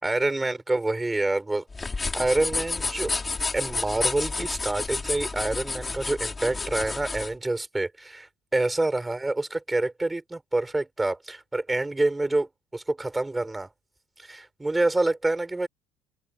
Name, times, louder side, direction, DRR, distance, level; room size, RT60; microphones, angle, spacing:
voice 1, 0.0-1.6 2.1-3.1 3.5-8.2 8.5-13.7 14.2-15.7, right 2 dB, 10° right, 5.0 m, -27 dB
sound 1, 1.7-7.3, left 3 dB, 15° left, 3.2 m, -30 dB
cardioid pair, 180°, 0 cm